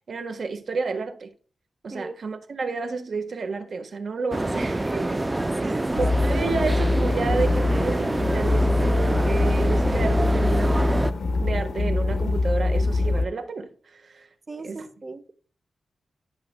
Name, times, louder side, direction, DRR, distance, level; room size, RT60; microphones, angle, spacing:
voice 1, 0.0-1.3 1.8-5.3 5.6-11.1 11.4-14.3 14.6-14.9, right 4 dB, 65° right, 1.3 m, -31 dB
sound 1, 4.3-11.1, right 2 dB, 20° right, 0.5 m, -26 dB
voice 2, 5.6-6.4 14.5-15.3, right 3 dB, 35° right, 1.0 m, -38 dB
sound 2, 6.0-13.3, left 3 dB, 70° left, 0.8 m, -23 dB
11.5 x 5.9 x 2.2 m
cardioid pair, 80°, 0 cm